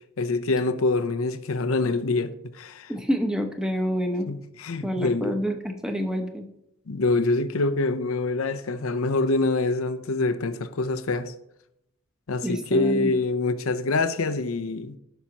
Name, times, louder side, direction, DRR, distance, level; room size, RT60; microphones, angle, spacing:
voice 1, 0.2-2.9 4.3-5.4 6.9-11.3 12.3-15.0, left 3 dB, 80° left, 0.6 m, -25 dB
voice 2, 2.9-4.3 4.8-6.5 12.4-13.1, equal, 5° right, 0.8 m, -27 dB
16.5 x 5.7 x 2.9 m
head